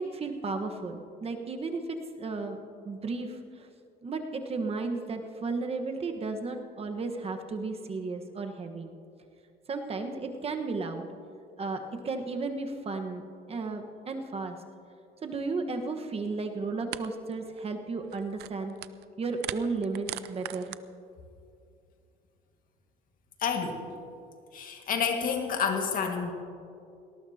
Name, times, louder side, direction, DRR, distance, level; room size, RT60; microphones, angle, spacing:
voice 1, 0.0-2.6 2.8-3.7 4.0-8.9 9.7-11.1 11.6-14.6 15.2-18.7 19.2-20.7, right 3 dB, 35° right, 4 dB, 1.4 m, -34 dB
sound 1, 16.3-16.4 16.9-17.1 17.3-17.6 18.0-19.1 19.3-20.8, right 15 dB, 75° right, 0.5 m, -39 dB
voice 2, 23.4-23.9 24.5-26.3, left 6 dB, 55° left, 3 dB, 1.9 m, -29 dB
18.5 x 18.5 x 2.9 m, 2.5 s
cardioid pair, 110°, 17 cm